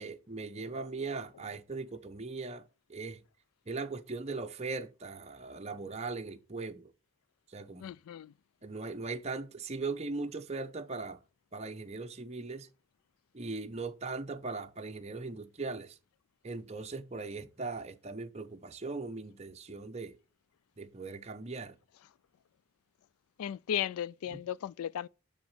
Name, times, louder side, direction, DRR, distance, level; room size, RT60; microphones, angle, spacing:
voice 1, 0.0-2.6 2.9-3.2 3.7-6.9 7.5-7.9 8.6-11.2 11.5-12.7 13.3-16.0 16.4-20.2 20.8-21.8 24.3-24.4, right 3 dB, 30° right, 0.8 m, -39 dB
voice 2, 7.8-8.3 23.4-25.1, left 9 dB, 85° left, 0.3 m, -35 dB
9.4 x 4.1 x 7.3 m
head